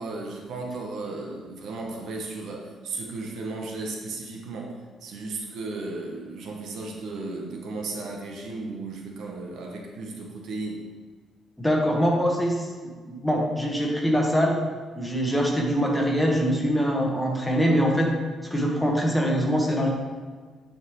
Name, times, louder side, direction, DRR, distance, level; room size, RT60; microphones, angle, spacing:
voice 1, 0.0-10.9, right 3 dB, 75° right, 1 dB, 1.0 m, -35 dB
voice 2, 11.6-14.6 15.0-18.1 18.5-19.9, equal, 5° left, -1 dB, 1.2 m, -23 dB
9.4 x 3.7 x 3.1 m, 1.5 s
cardioid pair, 90°, 0 cm